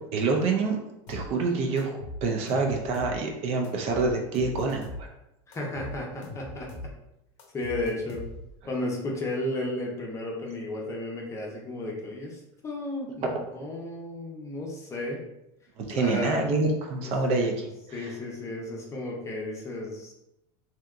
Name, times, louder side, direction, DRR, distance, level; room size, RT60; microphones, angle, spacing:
voice 1, 0.1-0.8 1.1-5.1 15.8-17.7 17.9-18.1, right 3 dB, 45° right, 1 dB, 0.5 m, -27 dB
sound 1, 1.1-1.3 1.8-3.2 3.6-5.1 5.5-6.9 7.4-8.6, left 2 dB, 70° left, 0.7 m, -41 dB
voice 2, 5.5-6.7 7.5-8.2 8.7-15.2 15.9-16.4 17.3-17.5 17.9-20.1, left 2 dB, 20° left, -2 dB, 0.7 m, -33 dB
3.3 x 2.7 x 2.4 m, 0.87 s
supercardioid pair, 130°, 15 cm